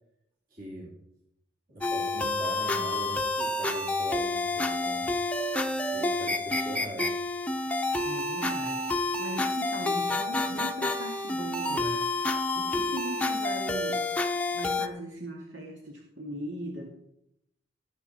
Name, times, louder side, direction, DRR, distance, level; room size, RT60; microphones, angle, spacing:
voice 1, 0.5-0.9 1.7-5.1 5.9-7.1, right 1 dB, 45° right, -4 dB, 2.7 m, -41 dB
sound 1, 1.8-14.9, left 2 dB, 5° left, 0.7 m, -29 dB
voice 2, 8.0-14.1 14.5-16.9, right 1 dB, 85° right, -1 dB, 2.2 m, -39 dB
17.5 x 7.6 x 4.2 m, 0.79 s
head